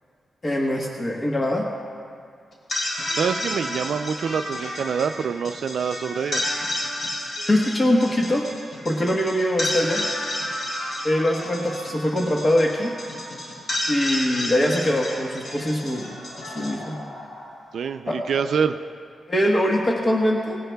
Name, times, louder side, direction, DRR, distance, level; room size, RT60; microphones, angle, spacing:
voice 1, 0.4-1.7 7.5-8.5 8.8-10.0 11.0-12.9 13.9-16.2 16.5-17.0 18.1-18.5 19.3-20.6, left 1 dB, 25° left, 0 dB, 1.2 m, -22 dB
sound 1, 2.5-17.8, left 1 dB, 55° left, 3.1 m, -31 dB
voice 2, 3.1-6.4 17.7-18.8, right 6 dB, 80° right, 8 dB, 0.3 m, -25 dB
18.5 x 18.0 x 2.3 m, 2.3 s
wide cardioid pair, 115°, 0 cm